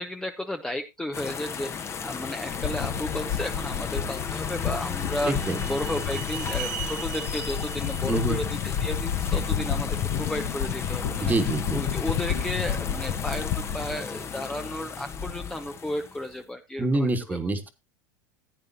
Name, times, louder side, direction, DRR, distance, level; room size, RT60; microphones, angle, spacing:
voice 1, 0.0-11.3 11.7-17.4, left 1 dB, 5° left, 6 dB, 0.8 m, -33 dB
sound 1, 1.1-16.4, left 6 dB, 25° left, 1.1 m, -35 dB
sound 2, 2.5-13.9, left 8 dB, 55° left, 1.3 m, -31 dB
sound 3, 4.2-9.4, right 12 dB, 65° right, 1.4 m, -41 dB
voice 2, 5.3-5.6 8.1-8.4 11.2-11.8 16.8-17.7, right 2 dB, 15° right, 9 dB, 1.6 m, -26 dB
15.0 x 8.8 x 2.7 m, 0.23 s
hypercardioid pair, 100°, 10 cm